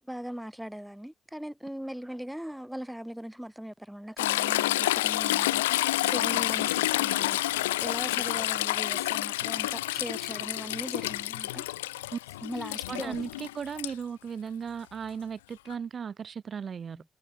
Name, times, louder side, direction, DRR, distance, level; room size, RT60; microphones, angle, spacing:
voice 1, 0.1-11.7 12.4-13.1 16.9-17.0, equal, 5° right, 7.3 m, -40 dB
Toilet flush / Trickle dribble, 4.2-13.9 15.7-15.8, left 17 dB, 85° left, 1.2 m, -29 dB
voice 2, 12.9-17.0, right 7 dB, 50° right, 3.0 m, -36 dB
hypercardioid pair, 40°, 0 cm